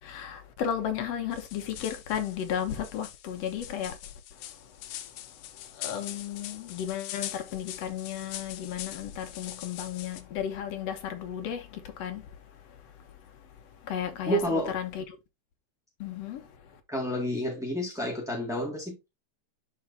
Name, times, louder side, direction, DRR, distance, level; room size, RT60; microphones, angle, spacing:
voice 1, 0.0-4.0 4.3-5.2 5.5-15.0 16.0-16.8, left 9 dB, 65° left, 2.0 m, -35 dB
sound 1, 1.3-10.2, left 13 dB, 85° left, 2.2 m, -43 dB
voice 2, 14.3-14.8 16.9-19.1, equal, ahead, 0.7 m, -30 dB
11.5 x 3.9 x 2.6 m
omnidirectional pair, 3.4 m